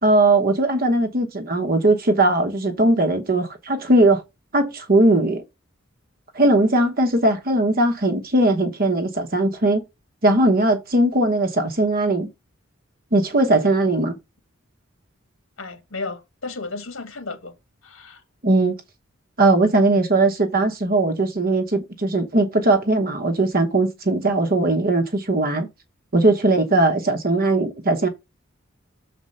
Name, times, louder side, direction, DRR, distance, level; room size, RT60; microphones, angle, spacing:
voice 1, 0.0-4.2 4.5-5.4 6.3-9.8 10.2-12.3 13.1-14.1 18.4-18.8 19.4-25.7 26.1-28.1, right 2 dB, 45° right, 1.1 m, -19 dB
voice 2, 15.6-17.5 17.8-18.2, left 3 dB, 75° left, 1.6 m, -33 dB
7.0 x 4.2 x 5.3 m
head